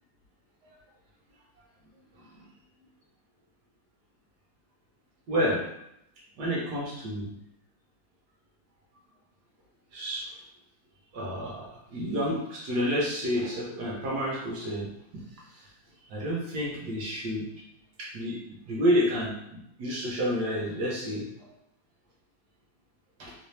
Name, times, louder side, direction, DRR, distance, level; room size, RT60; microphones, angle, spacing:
voice 1, 5.3-5.6 6.4-7.3 9.9-10.4 11.1-14.9 15.1-15.2 15.5-15.7 16.1-17.5 18.0-21.2 23.2-23.3, equal, 65° right, -3 dB, 1.2 m, -30 dB
3.3 x 2.6 x 3.2 m, 0.78 s
omnidirectional pair, 2.2 m